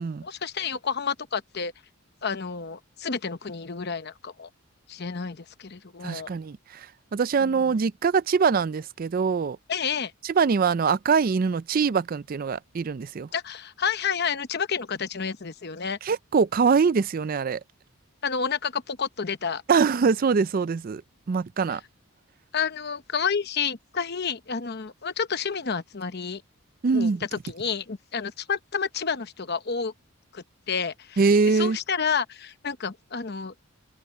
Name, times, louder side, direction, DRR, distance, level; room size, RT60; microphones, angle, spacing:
voice 1, 0.2-1.7 2.2-4.5 4.9-6.3 7.4-7.8 9.7-10.1 13.3-16.0 18.2-19.6 21.7-21.8 22.5-26.4 26.9-29.9 30.3-33.5, left 6 dB, 50° left, 0.9 m, -30 dB
voice 2, 6.0-6.6 7.1-9.6 10.4-13.3 16.0-17.6 19.7-21.0 21.3-21.8 26.8-27.2 31.2-31.8, right 5 dB, 45° right, 0.4 m, -23 dB
head